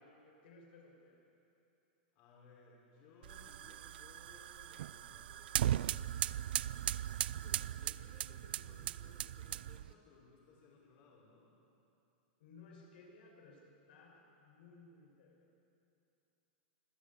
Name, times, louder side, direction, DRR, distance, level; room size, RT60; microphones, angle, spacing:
voice 1, 0.0-1.3 9.9-10.0 12.4-15.5, left 3 dB, 60° left, 0 dB, 6.0 m, -59 dB
voice 2, 2.1-6.1 7.4-11.5, left 4 dB, 35° left, -4 dB, 5.6 m, -62 dB
sound 1, 3.2-9.9, right 12 dB, 70° right, 0.5 m, -38 dB
25.5 x 17.0 x 8.7 m, 2.8 s
supercardioid pair, 170°, 6 cm